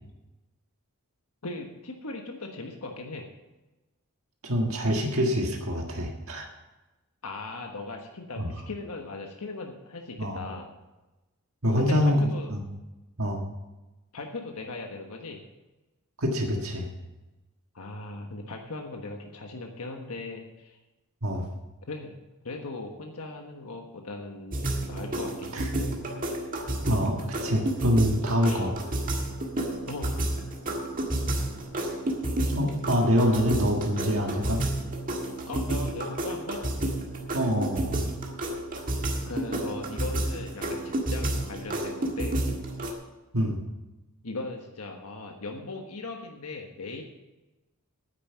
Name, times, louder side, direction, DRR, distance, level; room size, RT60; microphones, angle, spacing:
voice 1, 1.4-3.3 7.2-10.7 11.8-12.5 14.1-15.4 17.7-20.8 21.9-22.1 22.4-24.6 24.9-25.9 28.4-28.7 29.9-30.2 35.5-36.6 38.8-38.9 39.2-42.4 44.2-47.0, left 3 dB, 80° left, 2 dB, 1.4 m, -38 dB
voice 2, 4.4-6.5 8.4-8.5 10.2-10.4 11.6-12.2 12.5-12.6 13.2-13.4 16.2-16.9 21.2-21.5 25.5-25.7 26.9-28.7 32.5-34.6 37.3-38.0 43.3-43.6, equal, 65° right, 1 dB, 1.6 m, -25 dB
sound 1, 24.5-42.9, right 1 dB, 40° right, 1.8 m, -31 dB
9.7 x 9.3 x 7.0 m, 1.1 s
head